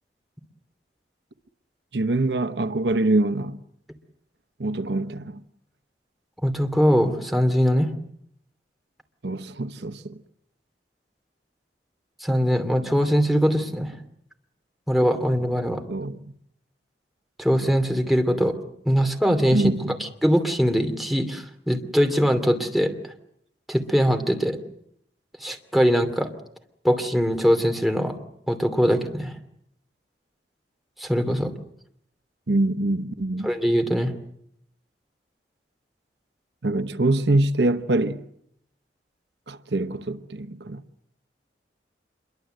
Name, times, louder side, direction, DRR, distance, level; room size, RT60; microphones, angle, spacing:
voice 1, 1.9-3.6 4.6-5.4 9.2-10.2 15.9-16.2 19.5-20.0 32.5-33.5 36.6-38.2 39.5-40.8, right 2 dB, 75° right, 1.0 m, -24 dB
voice 2, 6.4-7.9 12.2-13.9 14.9-15.8 17.4-18.5 18.8-19.7 20.0-22.9 23.7-24.6 25.4-26.3 26.8-28.1 28.5-29.3 31.0-31.5 33.4-34.1, equal, ahead, 2.7 m, -22 dB
27.0 x 23.0 x 7.9 m
head